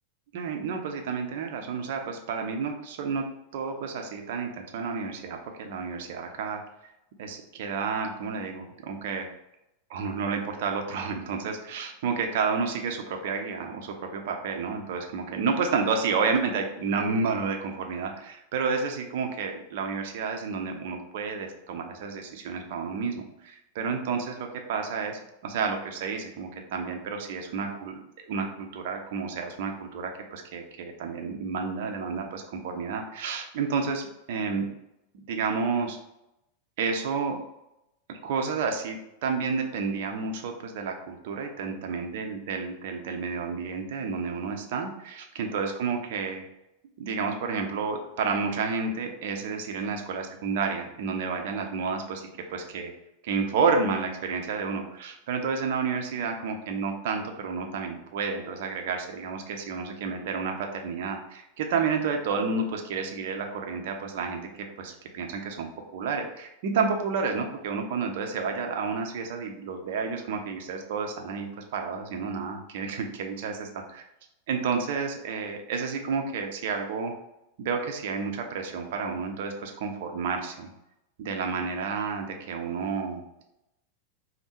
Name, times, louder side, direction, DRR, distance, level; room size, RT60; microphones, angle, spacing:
voice 1, 0.3-3.2 3.5-6.6 7.2-9.3 9.9-28.0 28.3-34.7 35.3-36.0 36.8-37.4 38.1-46.4 47.0-52.9 53.2-64.4 64.8-74.0 74.5-77.1 77.6-80.7 81.2-83.2, right 5 dB, 50° right, 3 dB, 0.7 m, -30 dB
5.3 x 2.1 x 4.4 m, 0.87 s
figure-of-eight pair, 90°, 0 cm